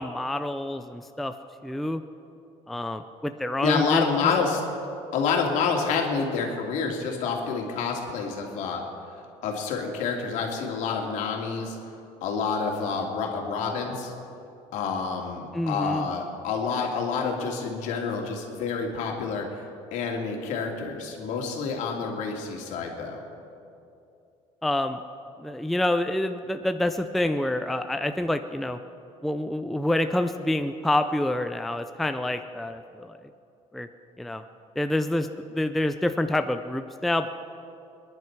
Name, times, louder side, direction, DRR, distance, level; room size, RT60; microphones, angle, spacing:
voice 1, 0.0-1.3 1.6-2.0 2.7-4.1 15.5-16.1 24.6-25.0 25.4-28.8 29.2-33.1 33.7-33.9 34.2-34.4 34.8-37.3, left 1 dB, ahead, 8 dB, 0.4 m, -27 dB
voice 2, 3.6-4.6 5.1-8.8 9.4-11.8 12.2-14.1 14.7-19.4 19.9-23.3, left 5 dB, 65° left, 1 dB, 2.7 m, -28 dB
27.0 x 11.0 x 4.7 m, 2.6 s
cardioid pair, 140°, 13 cm